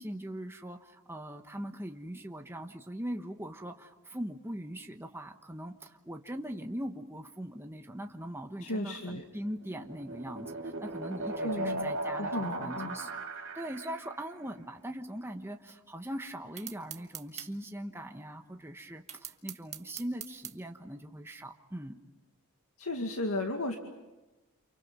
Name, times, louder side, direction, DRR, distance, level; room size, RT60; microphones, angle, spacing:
voice 1, 0.0-13.1 13.5-21.9, right 1 dB, 10° right, 4 dB, 1.2 m, -41 dB
voice 2, 8.6-9.2 11.4-11.9 12.2-12.9 22.8-23.8, left 2 dB, 80° left, 3 dB, 2.2 m, -34 dB
sound 1, 9.4-14.2, right 2 dB, 60° right, 2.9 m, -37 dB
sound 2, 16.6-17.5 19.1-20.6, right 10 dB, 30° right, 1.5 m, -42 dB
30.0 x 28.5 x 5.6 m, 1.1 s
head